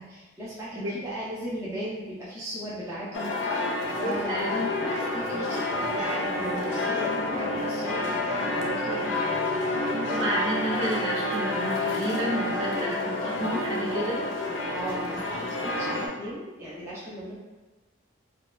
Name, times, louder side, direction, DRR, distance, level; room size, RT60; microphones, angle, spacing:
voice 1, 0.0-5.6 5.9-10.2 14.7-17.4, right 1 dB, 15° right, -9 dB, 0.5 m, -37 dB
sound 1, 3.1-16.1, left 2 dB, 70° left, 0.6 m, -29 dB
voice 2, 4.3-4.9 9.9-14.2, right 1 dB, 70° right, -7 dB, 1.1 m, -31 dB
4.6 x 2.3 x 2.2 m, 1.2 s
head